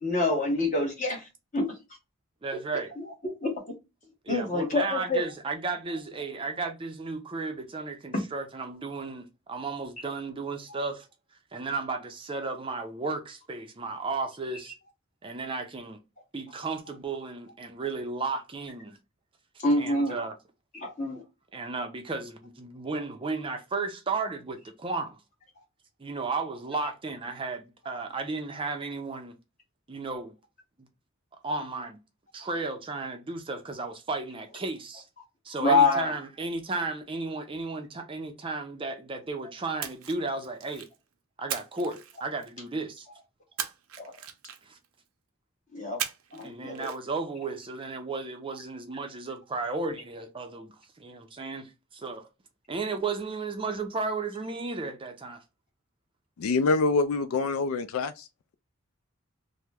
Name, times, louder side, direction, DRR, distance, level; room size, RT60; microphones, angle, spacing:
voice 1, 0.0-1.2 1.5-1.7 3.0-3.6 4.3-5.2 8.1-8.2 19.6-20.2 20.7-21.2 35.6-36.1 44.0-44.1 45.7-46.0 46.3-46.9, left 2 dB, 35° left, 1.1 m, -26 dB
voice 2, 2.4-2.9 4.2-11.1 11.5-14.7 15.2-16.0 16.3-19.0 19.8-20.3 21.5-25.2 26.0-29.4 29.9-30.3 31.4-32.0 32.3-35.1 35.4-40.9 41.4-43.1 44.6-44.8 46.4-52.2 52.7-55.4, right 3 dB, 25° right, 0.4 m, -34 dB
Splash splatter, 39.8-41.0 41.5-42.7 43.6-44.9 46.0-46.5 46.7-47.0, right 9 dB, 80° right, 0.5 m, -37 dB
voice 3, 56.4-58.3, left 3 dB, 75° left, 0.4 m, -25 dB
2.9 x 2.0 x 3.4 m
head